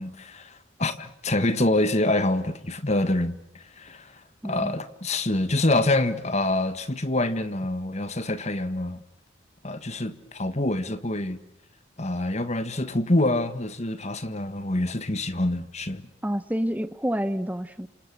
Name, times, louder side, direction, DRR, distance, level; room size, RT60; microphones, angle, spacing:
voice 1, 0.0-9.0 9.6-11.4 12.0-16.0, left 2 dB, 35° left, 1.6 m, -26 dB
voice 2, 4.4-4.8 16.2-17.9, equal, 10° right, 1.2 m, -28 dB
28.0 x 27.0 x 6.3 m
head